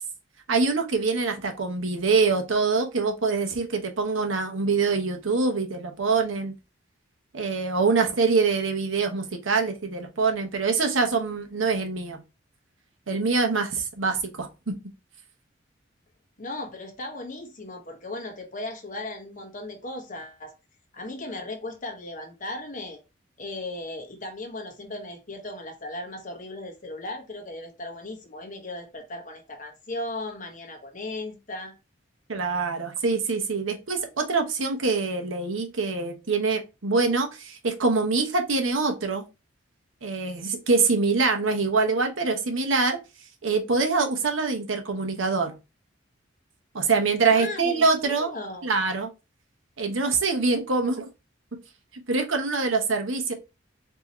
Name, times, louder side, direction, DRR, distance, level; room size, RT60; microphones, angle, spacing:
voice 1, 0.5-6.5 7.3-12.2 13.1-14.7 32.3-39.2 40.0-43.0 43.4-45.5 46.7-48.3 48.6-49.1 49.8-51.1 52.1-53.3, right 4 dB, 90° right, 1.0 m, -24 dB
voice 2, 16.4-20.5 20.9-23.0 23.4-31.7 47.3-48.7, left 2 dB, 40° left, 1.1 m, -37 dB
4.7 x 2.8 x 3.0 m
head